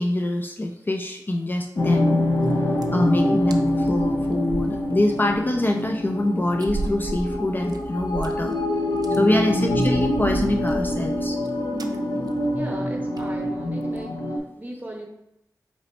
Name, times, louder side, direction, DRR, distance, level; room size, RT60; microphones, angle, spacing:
voice 1, 0.0-2.2 2.7-8.5 8.9-11.4, left 1 dB, 30° left, 3 dB, 0.4 m, -25 dB
sound 1, 1.8-14.4, left 1 dB, 80° left, 0.6 m, -25 dB
sound 2, 2.3-2.5 2.8-3.1 3.5-3.6 3.9-5.4 5.8-5.9 6.6-8.6 8.9-9.2 9.7-11.5 11.8-12.0 12.3-12.5 12.7-12.8 13.2-13.4 13.8-14.1, right 3 dB, 75° right, 0.4 m, -34 dB
voice 2, 9.4-9.8 12.5-15.1, right 1 dB, 25° right, 0 dB, 1.0 m, -38 dB
4.1 x 3.0 x 4.2 m, 0.83 s
wide cardioid pair, 95°, 7 cm